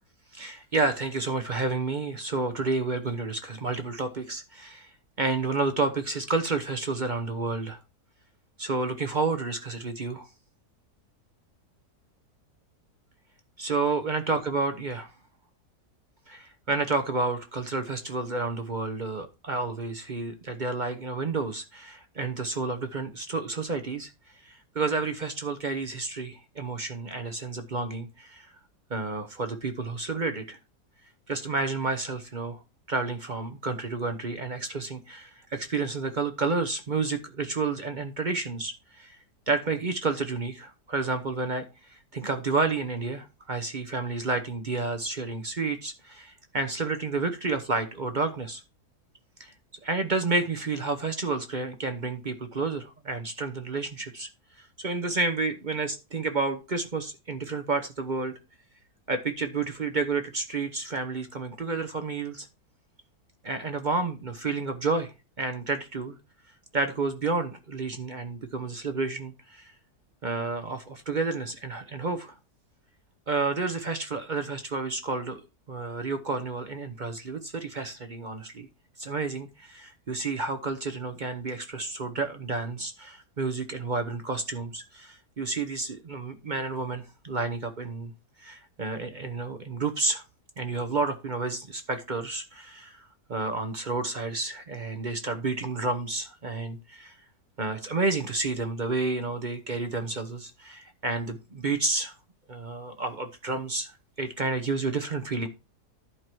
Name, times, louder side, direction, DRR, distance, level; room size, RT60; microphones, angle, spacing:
voice 1, 0.3-4.9 5.2-7.8 8.6-10.3 13.6-15.1 16.3-24.1 24.4-28.5 28.9-30.6 31.3-32.6 32.9-39.2 39.5-48.6 49.4-49.5 49.8-54.3 54.6-58.3 59.1-62.5 63.4-65.1 65.4-66.2 66.7-69.7 70.2-72.4 73.3-75.4 75.7-78.7 79.0-88.1 88.4-90.2 90.6-97.1 97.6-102.1 102.5-103.9 104.2-105.5, right 3 dB, 40° right, 0.8 m, -30 dB
11.5 x 4.7 x 4.5 m
omnidirectional pair, 1.8 m